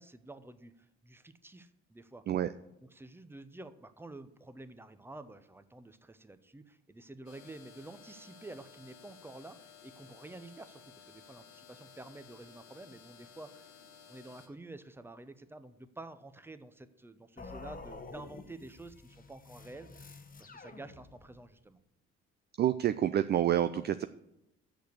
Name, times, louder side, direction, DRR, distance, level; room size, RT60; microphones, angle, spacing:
voice 1, 0.0-2.2 2.9-13.7 14.1-20.1 20.4-21.8, right 2 dB, 5° right, 12 dB, 0.7 m, -50 dB
sound 1, 7.3-14.5, left 7 dB, 65° left, 1.4 m, -56 dB
sound 2, 17.4-21.5, left 4 dB, 25° left, 1.0 m, -49 dB
voice 2, 22.6-24.1, right 11 dB, 30° right, 12 dB, 0.4 m, -28 dB
8.1 x 6.6 x 7.9 m, 0.87 s
figure-of-eight pair, 50°, 36 cm